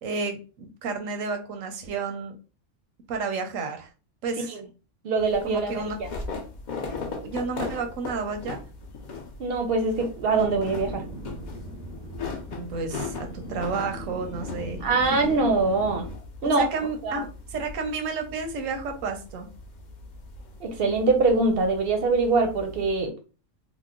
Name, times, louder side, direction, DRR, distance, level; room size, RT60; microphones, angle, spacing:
voice 1, 0.0-2.3 3.1-3.9 4.2-4.6 5.4-6.0 7.2-8.6 12.5-15.2 16.4-19.5, right 4 dB, 85° right, 5 dB, 1.1 m, -31 dB
voice 2, 5.0-5.7 6.0-6.1 9.4-11.0 14.8-16.1 16.4-16.6 17.0-17.2 20.6-23.1, right 3 dB, 60° right, 5 dB, 0.7 m, -23 dB
sound 1, 5.2-23.0, left 4 dB, 50° left, 0.5 m, -39 dB
sound 2, 10.3-16.2, equal, 15° left, 0.9 m, -39 dB
2.9 x 2.0 x 3.6 m, 0.35 s
omnidirectional pair, 1.3 m